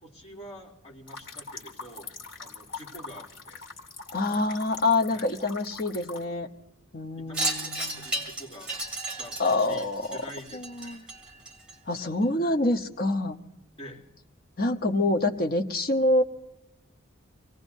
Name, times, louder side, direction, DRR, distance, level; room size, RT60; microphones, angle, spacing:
voice 1, 0.0-3.6 5.1-5.3 7.2-8.7 9.2-11.1 13.8-14.1, equal, 30° left, -4 dB, 3.1 m, -46 dB
sound 1, 1.1-6.2, left 4 dB, 60° left, 2.7 m, -43 dB
voice 2, 4.1-6.5 6.9-8.1 9.4-10.2 10.5-11.0 11.9-13.4 14.6-16.2, left 2 dB, 45° left, 4 dB, 1.0 m, -26 dB
Wind chime, 7.3-12.0, right 2 dB, 5° right, 2.4 m, -34 dB
26.0 x 18.0 x 2.7 m, 0.94 s
head